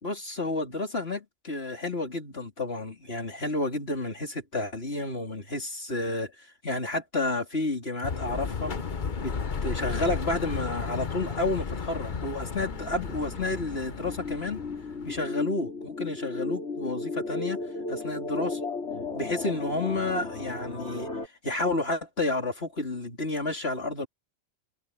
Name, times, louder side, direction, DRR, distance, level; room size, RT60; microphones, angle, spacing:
voice 1, 0.0-6.3 6.6-8.7 9.2-9.3 9.6-14.6 15.0-17.6 17.9-18.6 19.1-21.1 21.4-24.1, left 2 dB, 65° left, 4.0 m, -30 dB
sound 1, 8.0-15.2, left 5 dB, 45° left, 1.1 m, -34 dB
sound 2, 12.0-21.3, left 3 dB, 80° left, 4.3 m, -36 dB
omnidirectional pair, 1.1 m